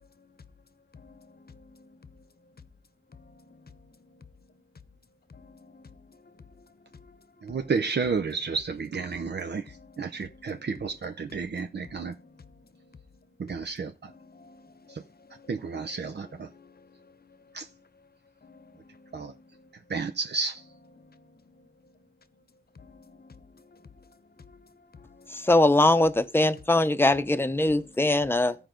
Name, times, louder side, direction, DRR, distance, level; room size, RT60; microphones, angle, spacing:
voice 1, 1.0-2.0 3.3-3.7 4.1-4.2 5.3-6.2 6.6-6.7 6.9-7.2 7.5-7.7 9.7-10.7 12.0-12.6 12.9-13.0 14.1-15.5 16.0-17.0 17.3-17.4 18.4-19.4 21.0-21.5 22.8-23.8 24.4-24.7 24.9-25.5 27.8-28.2, left 4 dB, 55° left, 0.9 m, -53 dB
voice 2, 7.4-9.6 10.0-12.1 13.4-14.1 14.9-15.0 15.5-16.5 17.5-17.7 19.1-19.3 19.9-20.6, right 5 dB, 60° right, 0.6 m, -31 dB
voice 3, 25.5-28.5, left 2 dB, 10° left, 0.7 m, -21 dB
14.0 x 4.7 x 5.1 m
wide cardioid pair, 90°, 19 cm